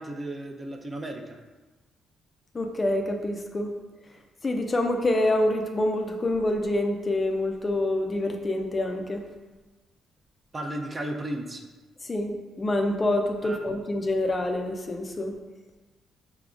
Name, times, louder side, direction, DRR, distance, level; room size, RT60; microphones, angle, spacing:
voice 1, 0.0-1.4 10.5-11.6 13.4-13.6, right 1 dB, 30° right, 3 dB, 0.6 m, -34 dB
voice 2, 2.5-3.7 4.4-9.2 12.0-15.3, left 1 dB, 30° left, 4 dB, 0.4 m, -26 dB
5.8 x 3.4 x 2.5 m, 1.2 s
cardioid pair, 90°, 0 cm